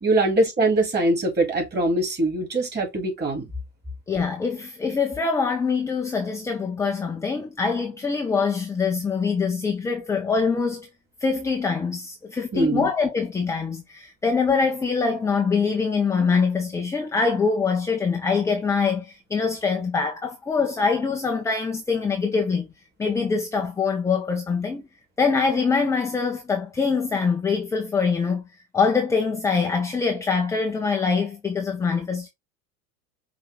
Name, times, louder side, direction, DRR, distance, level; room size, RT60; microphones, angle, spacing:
voice 1, 0.0-3.5 12.5-12.9, right 2 dB, 20° right, 2.7 m, -22 dB
voice 2, 4.1-10.9 11.2-22.7 23.0-24.8 25.2-28.4 28.7-32.3, left 5 dB, 5° left, 0.5 m, -24 dB
5.5 x 2.9 x 3.4 m
figure-of-eight pair, 85°, 48 cm